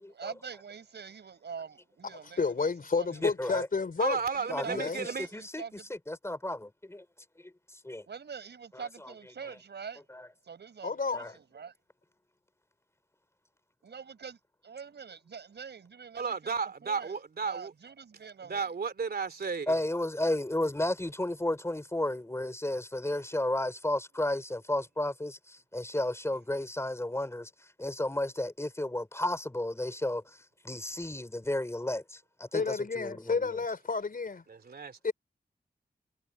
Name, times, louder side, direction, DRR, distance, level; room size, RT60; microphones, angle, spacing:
voice 1, 0.1-2.7 3.0-3.2 4.3-5.9 8.0-10.0 10.4-11.7 13.8-14.4 14.6-16.6 16.8-17.1 17.5-18.7, right 6 dB, 85° right, 5.4 m, -44 dB
voice 2, 2.4-4.2 4.7-5.1 10.8-11.3 32.5-34.4 35.0-35.1, left 4 dB, 55° left, 4.7 m, -30 dB
voice 3, 3.2-3.7 4.5-7.1 7.4-8.1 8.7-9.1 10.1-10.3 11.1-11.3 19.7-27.5 27.8-33.6, left 1 dB, 15° left, 5.4 m, -33 dB
voice 4, 4.0-5.3 16.2-17.7 18.5-19.7 32.6-32.7 34.5-35.0, right 5 dB, 65° right, 2.9 m, -33 dB
wide cardioid pair, 95°, 17 cm